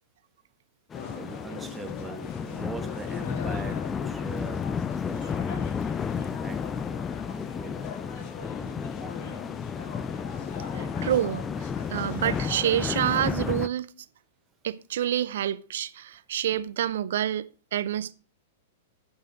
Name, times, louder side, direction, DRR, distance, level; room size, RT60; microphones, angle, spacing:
sound 1, 0.9-12.8, left 5 dB, 45° left, 2.2 m, -41 dB
sound 2, 0.9-13.7, left 6 dB, 20° left, 0.4 m, -32 dB
voice 1, 1.1-4.6 5.0-5.7 6.1-6.6 7.4-7.8, right 4 dB, 15° right, 1.4 m, -42 dB
voice 2, 10.7-13.9 14.6-18.1, right 11 dB, 60° right, 0.7 m, -28 dB
11.5 x 5.6 x 6.0 m
figure-of-eight pair, 105°, 0 cm